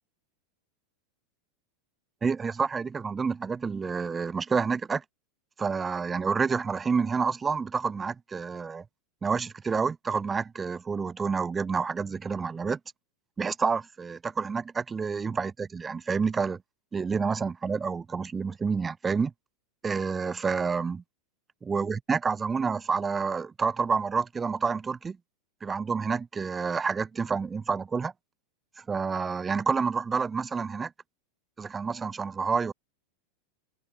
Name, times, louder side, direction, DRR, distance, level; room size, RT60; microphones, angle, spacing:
voice 1, 2.2-5.0 5.6-8.8 9.2-12.8 13.4-16.6 16.9-19.3 19.8-21.0 21.6-25.2 25.6-28.1 28.8-30.9 31.6-32.7, right 5 dB, 20° right, 0.4 m, -29 dB
figure-of-eight pair, 90°, 0 cm